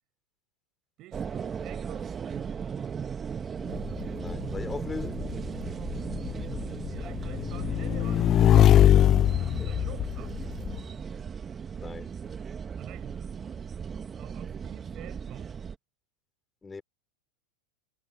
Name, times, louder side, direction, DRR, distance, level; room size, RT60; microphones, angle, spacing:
voice 1, 1.0-2.8 6.8-9.2 9.5-10.5 12.8-13.8 14.1-15.6, right 16 dB, 45° right, 7.7 m, -48 dB
sound 1, 1.1-15.8, right 7 dB, 25° right, 1.8 m, -37 dB
Motorcycle / Engine, 3.7-10.8, left 11 dB, 35° left, 0.4 m, -23 dB
voice 2, 4.2-5.3 9.6-9.7 11.1-11.3 11.8-12.3 16.6-16.8, left 4 dB, 15° left, 4.9 m, -39 dB
hypercardioid pair, 120°, 0 cm